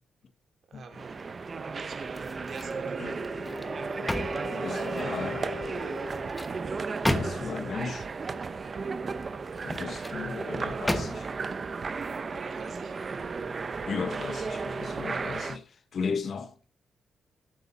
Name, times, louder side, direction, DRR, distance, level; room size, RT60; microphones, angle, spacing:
voice 1, 0.7-1.2 1.8-3.2 5.8-6.0 8.4-8.6 12.3-13.0, right 5 dB, 50° right, 2.6 m, -48 dB
sound 1, 0.9-15.6, right 4 dB, 30° right, 0.7 m, -34 dB
sound 2, 2.1-2.8 3.2-5.2 5.9-7.7 9.5-10.2 10.9-11.5 12.0-12.2, left 1 dB, 5° left, 1.0 m, -34 dB
Wind instrument woodwind instrument, 2.8-6.4, left 5 dB, 25° left, 2.0 m, -41 dB
voice 2, 4.5-5.5 7.1-8.1 9.6-11.3 13.9-15.6 15.9-16.5, left 5 dB, 45° left, 1.1 m, -35 dB
14.5 x 8.3 x 4.0 m
wide cardioid pair, 165°, 0 cm